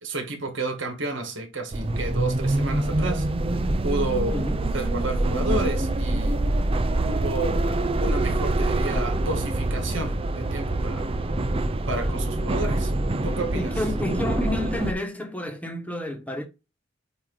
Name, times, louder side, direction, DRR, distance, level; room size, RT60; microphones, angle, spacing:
voice 1, 0.0-3.3 3.8-4.4 4.7-6.4 7.1-7.6 8.0-11.1 11.9-12.9 13.2-13.8, right 2 dB, 75° right, 1.9 m, -31 dB
sound 1, 1.7-14.9, right 2 dB, 30° right, 0.6 m, -25 dB
voice 2, 13.5-16.4, left 1 dB, 10° left, 1.4 m, -30 dB
8.2 x 2.9 x 4.0 m
head